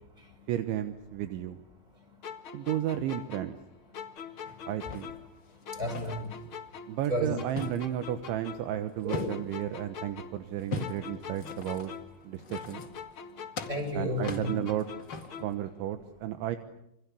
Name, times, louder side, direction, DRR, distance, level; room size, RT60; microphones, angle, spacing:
voice 1, 0.5-1.6 2.5-3.6 4.7-5.1 6.9-11.9 12.2-12.9 13.9-14.9 15.4-16.6, right 12 dB, 80° right, 9 dB, 3.5 m, -33 dB
sound 1, 2.2-5.4 5.7-8.8 9.1-12.2 12.5-15.7, left 6 dB, 70° left, 1.2 m, -44 dB
sound 2, 4.5-6.5 7.0-9.7 10.5-13.3 13.5-15.5, left 5 dB, 45° left, 1.4 m, -41 dB
voice 2, 5.5-6.4 6.8-7.3 9.0-9.3 13.2-13.4 13.7-14.6 15.3-15.4, equal, 10° right, 3 dB, 6.4 m, -34 dB
27.0 x 25.5 x 8.5 m, 0.80 s
omnidirectional pair, 5.3 m